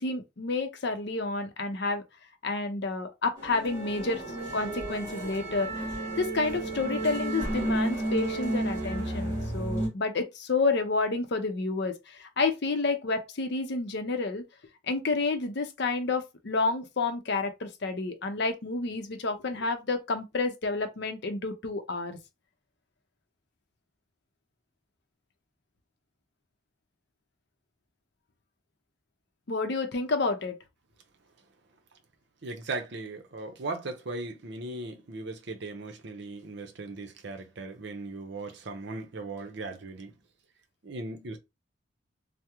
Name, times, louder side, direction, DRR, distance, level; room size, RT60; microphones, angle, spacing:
voice 1, 0.0-2.0 2.4-4.2 4.5-5.9 6.2-14.4 14.9-22.2 29.5-30.6, left 3 dB, 55° left, 0.6 m, -30 dB
sound 1, 3.4-9.9, right 1 dB, 15° right, 1.6 m, -32 dB
voice 2, 32.4-40.1 40.8-41.4, right 2 dB, 60° right, 0.6 m, -38 dB
3.5 x 2.0 x 2.9 m
head